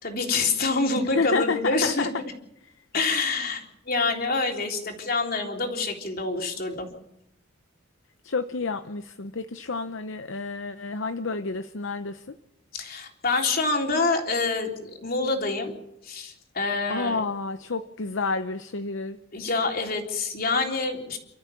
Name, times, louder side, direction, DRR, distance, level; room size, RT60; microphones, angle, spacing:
voice 1, 0.0-2.1 2.9-6.9 12.7-15.8 16.0-17.2 19.3-21.2, left 3 dB, 50° left, 2 dB, 3.6 m, -26 dB
voice 2, 1.0-2.1 8.2-12.4 16.9-19.2, left 4 dB, 65° left, 9 dB, 0.8 m, -29 dB
30.0 x 13.5 x 7.0 m, 0.83 s
head